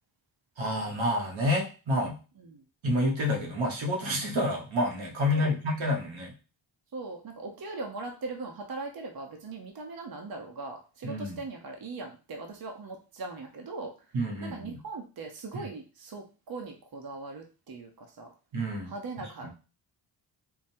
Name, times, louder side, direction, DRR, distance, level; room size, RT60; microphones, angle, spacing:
voice 1, 0.6-2.2 2.8-6.3 11.0-11.4 14.1-14.8 15.5-15.6 18.5-18.9 19.4-19.5, left 1 dB, 80° right, 0 dB, 1.2 m, -29 dB
voice 2, 6.9-13.9 14.4-18.3 18.8-19.5, right 3 dB, 50° right, 2 dB, 0.9 m, -40 dB
3.7 x 2.3 x 4.3 m, 0.33 s
cardioid pair, 65°, 46 cm